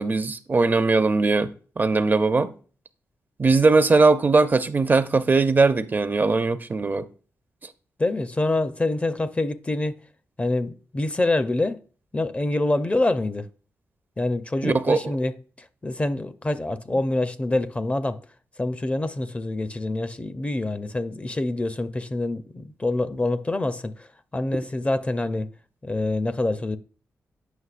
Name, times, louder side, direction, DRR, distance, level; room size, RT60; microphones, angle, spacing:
voice 1, 0.0-2.5 3.4-7.1 14.6-15.0, right 3 dB, 35° right, 0.5 m, -20 dB
voice 2, 8.0-10.0 10.4-11.8 12.1-13.5 14.2-18.2 18.6-25.5 25.8-26.8, left 2 dB, 25° left, 0.5 m, -26 dB
8.0 x 5.5 x 2.4 m
cardioid pair, 85°, 6 cm